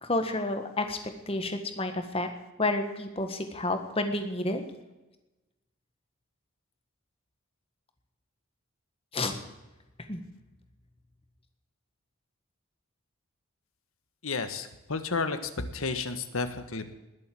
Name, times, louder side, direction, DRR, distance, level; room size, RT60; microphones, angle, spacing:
voice 1, 0.0-1.0 1.3-2.3 2.6-4.6 9.1-9.3 10.1-10.2, left 2 dB, 25° left, 7 dB, 1.6 m, -30 dB
voice 2, 14.2-16.9, left 4 dB, 75° left, 9 dB, 1.4 m, -32 dB
20.5 x 7.9 x 7.7 m, 1.0 s
head